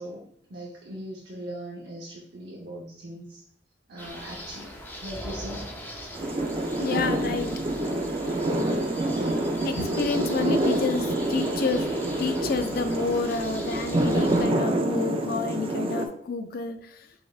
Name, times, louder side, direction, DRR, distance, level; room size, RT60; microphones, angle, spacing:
voice 1, 0.0-3.4 3.9-4.7 5.0-5.7 13.0-13.5, right 1 dB, 70° right, -4 dB, 0.7 m, -40 dB
sound 1, 4.0-14.4, equal, 10° left, 0.6 m, -41 dB
sound 2, 6.1-16.1, right 1 dB, 35° right, 0.4 m, -27 dB
voice 2, 6.8-7.5 9.5-11.9 12.2-16.8, left 4 dB, 55° left, 8 dB, 0.5 m, -29 dB
5.2 x 3.4 x 2.4 m, 0.67 s
head